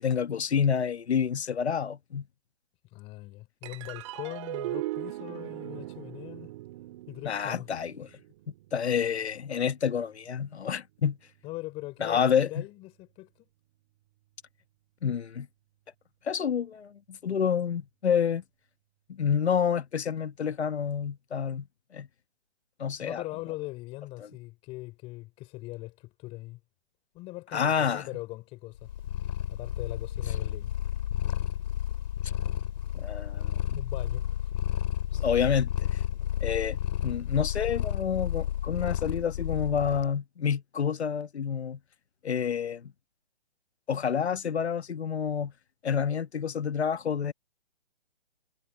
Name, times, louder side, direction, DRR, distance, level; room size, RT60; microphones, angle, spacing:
voice 1, 0.0-2.3 7.2-8.1 8.5-11.2 12.0-12.6 15.0-15.5 16.2-18.4 19.1-21.7 21.9-22.1 22.8-23.2 27.5-28.1 32.2-32.3 32.9-33.8 35.1-36.0 36.4-41.8 42.2-42.9 43.9-45.5 45.8-47.3, left 7 dB, 75° left, 1.2 m, -28 dB
voice 2, 2.9-6.5 7.1-7.7 11.4-13.3 23.0-26.6 27.1-28.9 29.5-30.7 33.7-34.5, left 20 dB, 15° left, 4.9 m, -41 dB
sound 1, 3.6-10.3, right 17 dB, 30° right, 3.0 m, -40 dB
Purr, 28.8-40.1, left 11 dB, 40° left, 2.9 m, -31 dB
hypercardioid pair, 160°, 33 cm